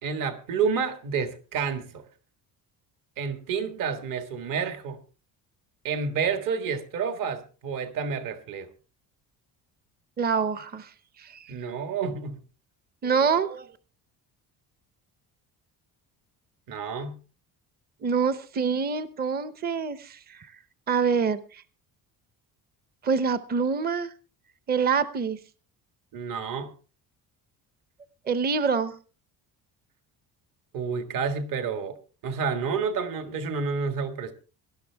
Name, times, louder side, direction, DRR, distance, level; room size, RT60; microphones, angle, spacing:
voice 1, 0.0-2.0 3.2-5.0 5.8-8.7 11.5-12.4 16.7-17.2 26.1-26.7 30.7-32.0 32.2-34.3, right 5 dB, 60° right, 7 dB, 1.8 m, -29 dB
voice 2, 10.2-10.9 11.2-11.4 13.0-13.7 18.0-20.2 20.9-21.4 23.0-24.1 24.7-25.4 28.3-28.9, right 5 dB, 25° right, 13 dB, 0.7 m, -25 dB
18.5 x 12.0 x 3.4 m, 0.36 s
cardioid pair, 165°, 38 cm